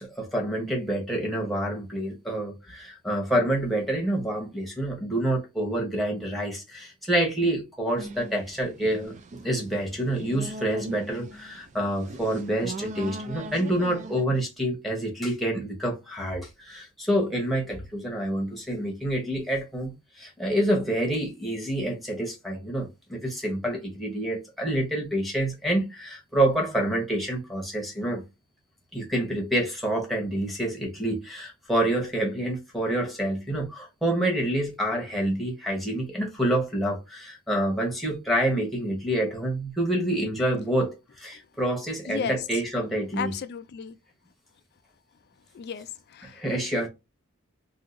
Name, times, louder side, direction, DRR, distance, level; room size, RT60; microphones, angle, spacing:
voice 1, 0.0-9.1 9.4-28.2 28.9-43.3 46.2-46.9, right 1 dB, ahead, 0.9 m, -27 dB
sound 1, 8.0-14.2, right 1 dB, 35° right, 0.3 m, -40 dB
voice 2, 42.1-42.4 43.2-44.0 45.5-46.4 46.7-46.9, left 7 dB, 50° left, 0.3 m, -34 dB
2.7 x 2.4 x 3.7 m
head